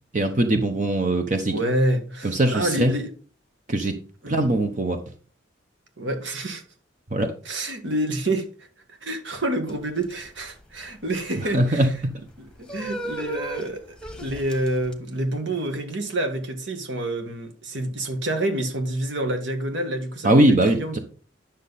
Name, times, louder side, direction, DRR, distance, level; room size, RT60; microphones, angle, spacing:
voice 1, 0.1-1.5 2.2-2.9 3.7-4.0 4.3-5.0 7.1-7.3 11.5-11.9 20.2-21.0, right 1 dB, 40° right, 0.8 m, -21 dB
voice 2, 1.5-3.1 4.2-4.4 6.0-6.6 7.5-11.8 12.4-20.5 20.7-21.0, right 1 dB, 75° right, 1.8 m, -28 dB
sound 1, 9.7-14.9, right 1 dB, 5° left, 1.2 m, -37 dB
10.5 x 6.4 x 4.1 m
head